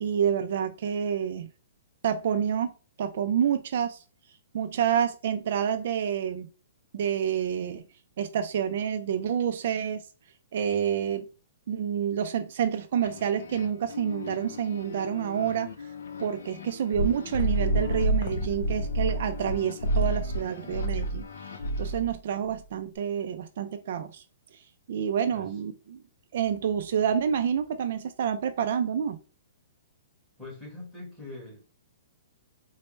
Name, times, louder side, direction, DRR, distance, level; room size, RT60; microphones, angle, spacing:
voice 1, 0.0-1.5 2.0-2.7 3.0-4.0 4.5-6.5 6.9-7.8 8.2-10.0 10.5-11.2 11.7-15.7 16.2-21.3 21.8-24.2 24.5-24.6 24.9-26.0 26.3-29.2, right 8 dB, 55° right, 8 dB, 0.3 m, -28 dB
sound 1, 13.0-22.0, left 6 dB, 80° left, 0.5 m, -43 dB
sound 2, 16.9-19.6 19.8-20.4 20.7-21.2 21.6-22.1, right 1 dB, 55° left, 0.9 m, -27 dB
voice 2, 30.4-31.6, left 2 dB, 5° left, -4 dB, 1.4 m, -42 dB
4.3 x 2.0 x 3.1 m, 0.35 s
hypercardioid pair, 165°, 0 cm